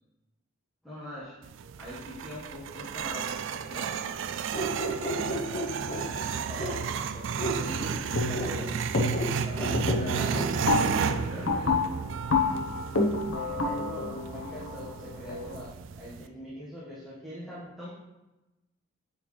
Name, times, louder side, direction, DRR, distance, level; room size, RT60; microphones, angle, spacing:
voice 1, 0.8-1.4 1.8-3.3 3.6-3.9 6.0-8.7 9.4-10.5 10.9-11.8 13.3-17.9, left 1 dB, ahead, -9 dB, 1.3 m, -42 dB
sound 1, 1.4-16.3, right 6 dB, 65° right, 0.3 m, -33 dB
sound 2, 4.5-6.0 6.6-6.8 7.4-7.6 8.3-8.5 9.1-9.3 9.6-9.8 10.3-10.5, right 1 dB, 40° left, 1.2 m, -33 dB
sound 3, 8.2-8.6 8.9-9.4 9.7-15.6, left 3 dB, 70° left, 0.9 m, -28 dB
9.1 x 4.1 x 3.2 m, 1.0 s
head